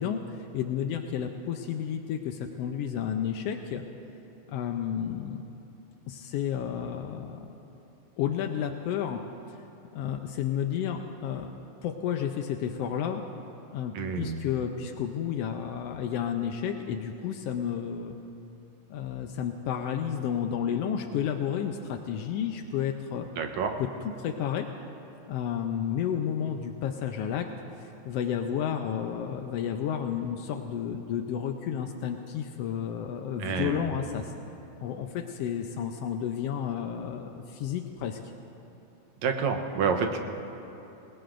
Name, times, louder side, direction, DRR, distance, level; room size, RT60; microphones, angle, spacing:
voice 1, 0.0-3.8 4.5-5.4 6.1-7.4 8.2-9.2 9.5-9.6 9.9-11.5 11.8-13.2 13.7-18.1 18.9-23.3 23.8-23.9 24.2-24.7 25.3-27.5 27.8-34.3 34.8-38.2, left 8 dB, 80° left, 4 dB, 1.4 m, -31 dB
voice 2, 13.9-14.4 23.4-23.7 33.4-34.0 39.2-40.2, right 5 dB, 70° right, 4 dB, 2.1 m, -28 dB
27.5 x 18.5 x 2.6 m, 2.9 s
omnidirectional pair, 3.5 m